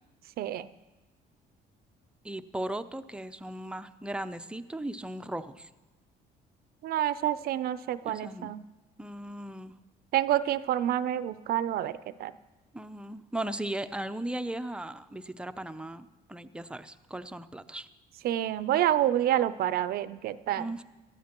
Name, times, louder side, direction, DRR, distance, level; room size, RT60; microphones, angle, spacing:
voice 1, 0.4-0.7 6.8-8.7 10.1-12.3 18.2-20.6, right 12 dB, 65° right, 15 dB, 0.5 m, -28 dB
voice 2, 2.2-5.7 8.0-8.5 9.0-9.7 12.7-17.9 20.6-20.8, right 1 dB, 5° right, 10 dB, 0.5 m, -37 dB
19.0 x 13.5 x 3.0 m, 1.1 s
cardioid pair, 110°, 17 cm